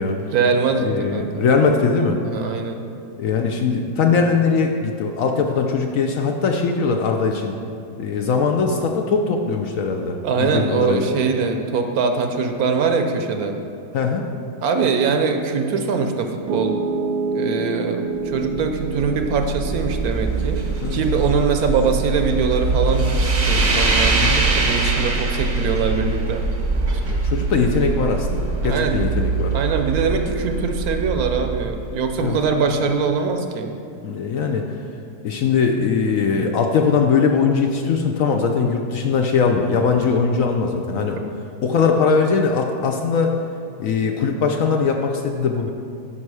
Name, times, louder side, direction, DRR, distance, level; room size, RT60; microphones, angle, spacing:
voice 1, 0.3-1.5 2.2-2.8 10.2-13.6 14.6-16.8 17.3-20.7 20.9-24.1 24.5-26.4 28.6-29.0 29.5-33.7, right 5 dB, 70° right, 5 dB, 1.1 m, -22 dB
voice 2, 0.8-2.2 3.2-7.5 8.0-11.1 13.9-14.3 20.8-21.0 24.2-24.5 27.1-29.6 32.2-32.4 34.0-34.6 35.2-41.2 41.6-43.4 43.8-45.7, left 5 dB, 65° left, 3 dB, 0.9 m, -20 dB
Piano, 16.5-28.7, right 3 dB, 90° right, 1.3 m, -31 dB
sound 1, 18.4-32.5, right 3 dB, 35° right, 0.8 m, -23 dB
9.8 x 5.8 x 4.8 m, 2.6 s
omnidirectional pair, 1.8 m